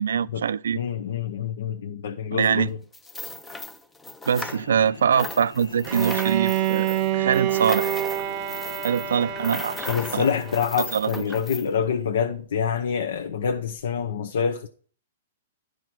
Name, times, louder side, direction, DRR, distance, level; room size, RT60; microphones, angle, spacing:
voice 1, 0.0-0.8 2.3-2.7 4.3-8.0 8.8-10.3 10.9-11.2, right 7 dB, 85° right, 0.4 m, -24 dB
voice 2, 0.7-2.7 9.9-14.7, left 7 dB, 70° left, 0.8 m, -26 dB
sound 1, 2.9-4.9 5.1-11.7, left 2 dB, 10° left, 0.5 m, -37 dB
sound 2, 4.4-10.4, left 4 dB, 90° left, 1.3 m, -43 dB
Bowed string instrument, 5.8-10.8, right 13 dB, 30° right, 0.7 m, -27 dB
11.5 x 4.7 x 6.0 m
hypercardioid pair, 150°, 0 cm